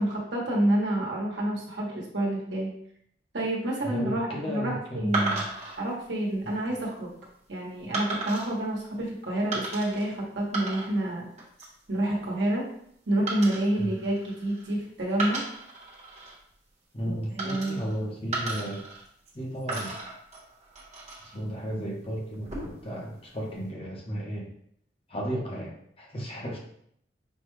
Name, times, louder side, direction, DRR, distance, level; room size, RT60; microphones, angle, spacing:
voice 1, 0.0-2.7 3.3-5.4 5.8-7.1 7.5-11.3 11.9-12.6 13.1-15.4 17.1-17.8, right 1 dB, 85° right, -3 dB, 1.2 m, -28 dB
voice 2, 3.8-5.4 6.4-6.6 13.8-13.9 16.9-18.8 19.3-20.0 21.3-24.5 25.1-26.6, equal, 35° left, -1 dB, 0.9 m, -34 dB
sound 1, 5.1-5.8 6.5-6.8 7.9-8.5 9.5-10.1 10.4-11.1 11.4-11.8 13.3-14.7 15.1-16.3 17.4-18.0 18.3-19.3 19.7-21.4 22.3-22.9, right 3 dB, 40° right, 1.2 m, -35 dB
5.2 x 2.3 x 3.1 m, 0.69 s
head